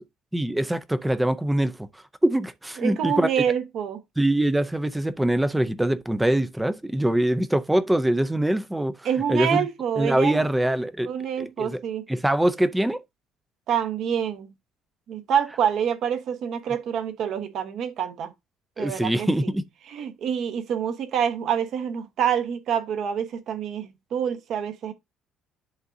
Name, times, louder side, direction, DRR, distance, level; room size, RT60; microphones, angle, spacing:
voice 1, 0.3-1.7 2.2-3.4 4.2-9.0 9.3-9.7 10.0-11.1 11.4-11.8 12.1-13.0 18.8-19.6, right 1 dB, 5° right, 0.5 m, -23 dB
voice 2, 2.8-4.0 9.0-10.5 11.0-12.0 13.7-14.5 15.1-18.3 18.8-19.5 19.9-24.9, right 8 dB, 50° right, 1.1 m, -27 dB
10.5 x 3.8 x 2.6 m
cardioid pair, 165°, 0 cm